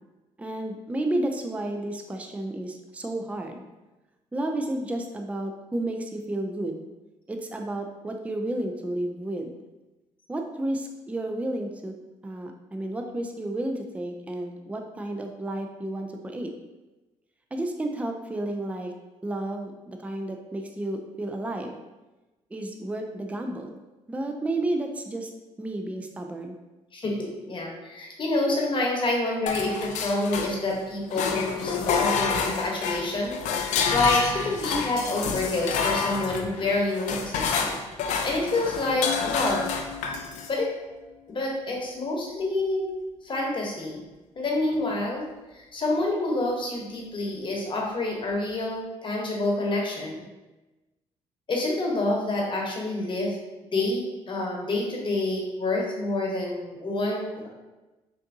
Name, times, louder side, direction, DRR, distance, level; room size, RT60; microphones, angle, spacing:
voice 1, 0.4-3.6 4.3-6.8 7.3-9.5 10.3-11.9 12.2-16.5 17.5-18.9 19.2-21.7 22.5-23.8 24.1-25.3 25.6-26.6, right 1 dB, 10° right, 3 dB, 0.4 m, -31 dB
voice 2, 26.9-33.4 33.7-39.7 40.5-40.7 41.3-42.9 43.2-44.0 44.3-45.3 45.5-50.2 51.5-53.4 53.7-57.5, left 2 dB, 40° left, -1 dB, 0.9 m, -28 dB
sound 1, 29.5-30.8 31.1-40.5, left 5 dB, 75° left, 0.4 m, -28 dB
3.4 x 2.7 x 2.6 m, 1.1 s
supercardioid pair, 65°, 13 cm